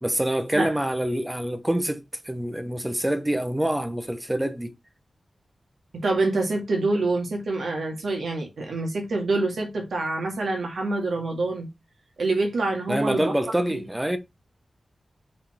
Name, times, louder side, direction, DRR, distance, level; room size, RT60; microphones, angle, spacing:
voice 1, 0.0-4.7 12.9-14.2, right 1 dB, 10° right, 1.1 m, -26 dB
voice 2, 5.9-11.7 12.2-13.3 13.7-13.8, right 2 dB, 85° right, 2.1 m, -26 dB
5.6 x 4.2 x 4.3 m
wide cardioid pair, 100°, 0 cm